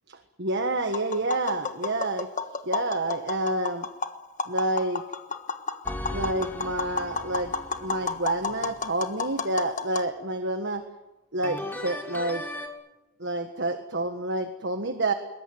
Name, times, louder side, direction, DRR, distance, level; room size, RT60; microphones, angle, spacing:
voice 1, 0.1-2.3 2.6-3.9 4.5-5.0 6.1-7.5 7.8-10.8 11.3-12.4 13.2-15.1, right 2 dB, 50° right, 8 dB, 1.5 m, -28 dB
Tap, 0.8-10.1, left 5 dB, 35° left, 1.3 m, -33 dB
sound 1, 5.8-8.9 11.4-12.7, left 1 dB, 10° left, 2.6 m, -38 dB
22.5 x 21.0 x 9.3 m, 1.0 s
head